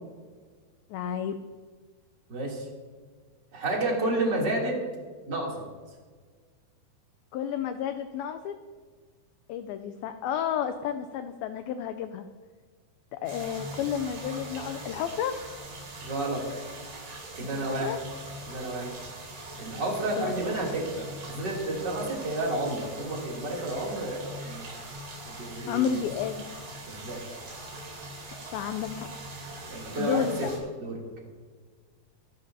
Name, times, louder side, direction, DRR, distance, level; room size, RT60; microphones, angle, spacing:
voice 1, 0.9-1.4 7.3-8.5 9.5-12.3 13.1-15.3 17.4-18.0 20.2-20.5 25.7-26.4 28.5-29.1 30.0-30.6, left 9 dB, 85° left, 8 dB, 2.1 m, -31 dB
voice 2, 2.3-2.7 3.5-4.7 5.3-5.5 16.0-16.4 17.4-18.0 18.5-18.9 19.5-24.6 25.2-25.8 26.8-27.2 29.7-30.5 30.8-31.0, right 2 dB, 25° right, -3 dB, 3.1 m, -31 dB
sound 1, 13.3-30.6, right 2 dB, 85° right, 7.0 m, -42 dB
25.5 x 12.0 x 2.8 m, 1.5 s
omnidirectional pair, 5.0 m